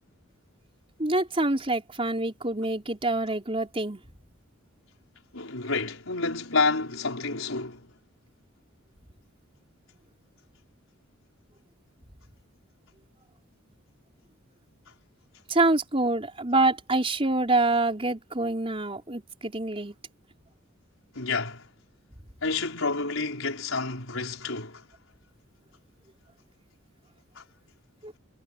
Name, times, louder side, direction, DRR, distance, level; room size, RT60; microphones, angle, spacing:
voice 1, 1.0-4.0 15.5-19.9 28.0-28.1, right 2 dB, 30° right, 4.7 m, -26 dB
voice 2, 5.3-7.8 21.1-21.6 22.4-24.8 27.3-27.4, left 3 dB, 80° left, 4.9 m, -29 dB
head